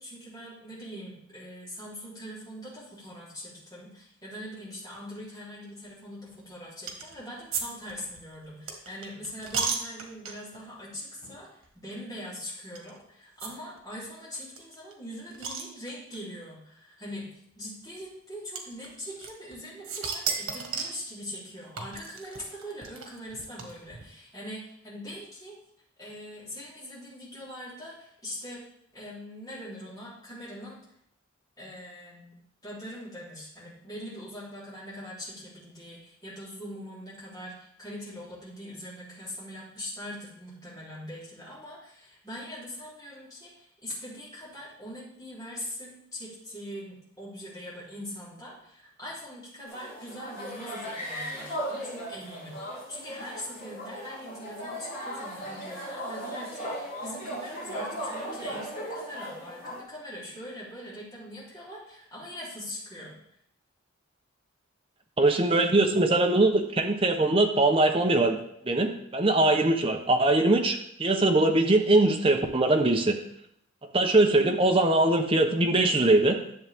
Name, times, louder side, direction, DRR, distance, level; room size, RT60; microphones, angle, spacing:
voice 1, 0.0-17.3 17.6-25.6 26.0-28.6 28.9-30.8 31.6-63.1, equal, 20° left, -9 dB, 3.6 m, -42 dB
sound 1, 6.9-7.1 7.5-10.6 11.2-11.4 11.6-11.7 12.7-12.9 13.4-13.5 13.8-13.9 14.0-14.1 14.6-16.2 17.1-17.2 18.5-19.5 19.8-21.0 21.8-24.0, right 5 dB, 85° right, 1.6 m, -34 dB
sound 2, 49.7-59.8, equal, 40° left, 3.4 m, -37 dB
voice 2, 65.2-68.4 68.6-73.2 73.9-76.4, right 2 dB, 25° right, 3 dB, 0.9 m, -22 dB
11.0 x 7.2 x 3.6 m, 0.72 s
head